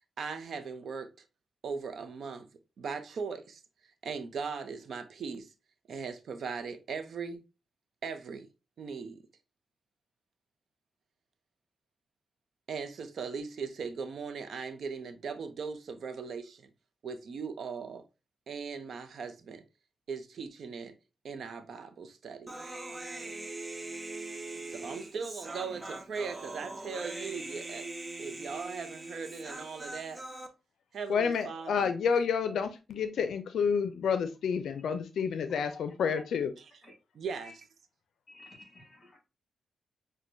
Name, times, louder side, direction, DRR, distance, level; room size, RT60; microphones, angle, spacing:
voice 1, 0.2-1.1 1.6-2.5 2.8-3.6 4.0-5.5 5.9-7.4 8.0-8.5 8.8-9.2 12.7-16.7 17.0-18.0 18.5-19.6 20.1-20.9 21.2-22.5 24.7-27.9 28.2-30.2 30.9-31.9 36.6-36.7 37.1-37.5, right 5 dB, 65° right, 0.6 m, -39 dB
Human voice, 22.5-30.5, right 2 dB, 20° right, 0.5 m, -41 dB
voice 2, 31.1-36.5, left 6 dB, 85° left, 0.4 m, -29 dB
voice 3, 38.3-39.2, left 2 dB, 35° left, 1.8 m, -51 dB
6.0 x 2.2 x 2.5 m
wide cardioid pair, 130°, 0 cm